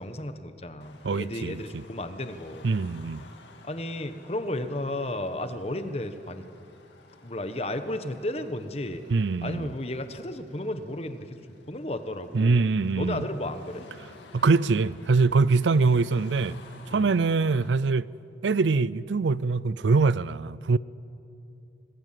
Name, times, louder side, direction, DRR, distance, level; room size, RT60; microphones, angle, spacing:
voice 1, 0.0-2.7 3.6-6.4 7.2-9.0 9.4-11.4 11.7-12.7 12.9-13.9 16.9-17.1, left 1 dB, 35° left, 1.2 m, -33 dB
Car passing by / Traffic noise roadway noise / Engine, 0.8-17.7, left 3 dB, 80° left, 2.2 m, -53 dB
voice 2, 1.0-1.8 2.6-3.2 9.1-9.7 12.3-13.2 14.3-16.6 16.9-18.1 18.4-20.8, right 4 dB, 85° right, 0.5 m, -23 dB
26.0 x 19.5 x 7.6 m
head